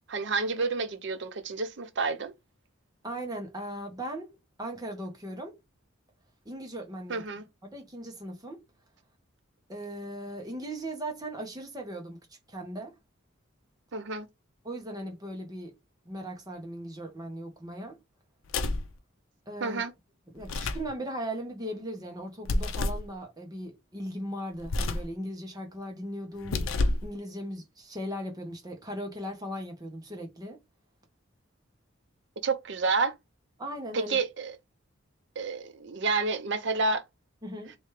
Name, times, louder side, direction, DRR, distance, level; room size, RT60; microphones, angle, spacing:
voice 1, 0.1-2.3 7.1-7.4 13.9-14.3 19.6-19.9 32.4-33.1 33.9-34.6 35.4-37.0, right 4 dB, 60° right, 0.6 m, -29 dB
voice 2, 3.0-5.6 6.4-7.2 7.6-8.6 9.7-13.0 14.6-15.8 16.0-18.0 19.5-19.8 20.3-26.8 27.0-30.6 33.6-34.2 37.4-37.8, right 1 dB, 20° right, 1.1 m, -38 dB
sound 1, 18.4-18.9 20.4-20.9 22.4-23.1 24.6-25.1 26.4-27.1, left 2 dB, 75° left, 0.5 m, -29 dB
3.3 x 3.1 x 3.2 m
head